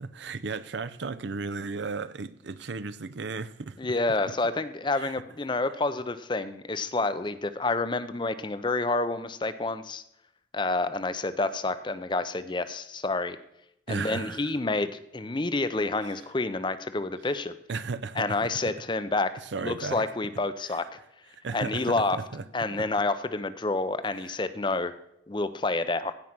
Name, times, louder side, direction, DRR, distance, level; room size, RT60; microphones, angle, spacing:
voice 1, 0.0-3.8 5.0-5.1 13.9-14.5 17.7-18.5 19.5-20.0 21.3-22.4, right 4 dB, 70° right, 0.6 m, -35 dB
voice 2, 3.8-10.0 10.5-13.4 13.9-17.5 18.2-20.9 21.5-22.2 22.5-24.9 25.3-26.1, left 3 dB, 25° left, 0.5 m, -29 dB
15.5 x 5.4 x 6.0 m
head